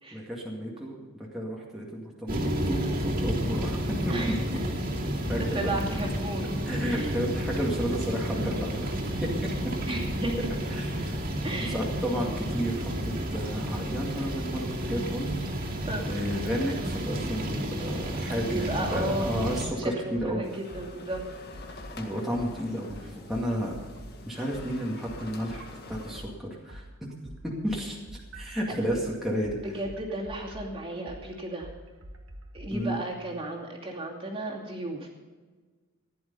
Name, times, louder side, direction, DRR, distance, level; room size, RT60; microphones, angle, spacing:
voice 1, 0.1-4.1 5.3-5.8 6.7-9.5 10.7-11.2 11.6-15.4 16.1-20.4 22.0-23.7 24.3-26.8 27.4-29.6 32.7-33.0, equal, ahead, -5 dB, 2.2 m, -32 dB
sound 1, 2.3-19.6, right 1 dB, 40° right, 2.7 m, -31 dB
voice 2, 4.1-4.6 5.4-6.5 6.8-7.3 9.9-10.5 11.4-11.7 15.9-16.1 18.4-21.2 28.7-28.8 29.6-31.7 32.5-35.1, right 1 dB, 25° right, -1 dB, 2.7 m, -34 dB
sound 2, 15.8-16.0 16.3-17.6 18.0-18.1 18.5-19.8 20.1-20.3 20.7-22.0 22.3-26.3 26.7-32.7, equal, 65° right, 1.7 m, -45 dB
sound 3, 20.4-26.2, left 3 dB, 50° left, 2.0 m, -46 dB
15.5 x 11.0 x 5.5 m, 1.4 s
head